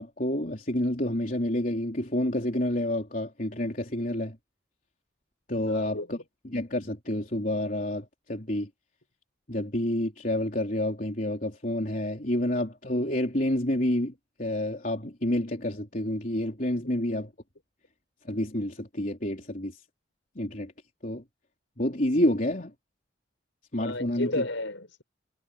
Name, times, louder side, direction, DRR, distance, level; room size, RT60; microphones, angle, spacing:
voice 1, 0.0-4.4 5.5-6.2 6.4-8.7 9.5-14.1 14.4-17.3 18.3-19.8 20.4-20.7 21.0-21.2 21.8-22.7 23.7-24.4, left 1 dB, 45° left, 3.7 m, -29 dB
voice 2, 5.7-6.1 23.8-25.0, left 2 dB, 75° left, 5.9 m, -32 dB
head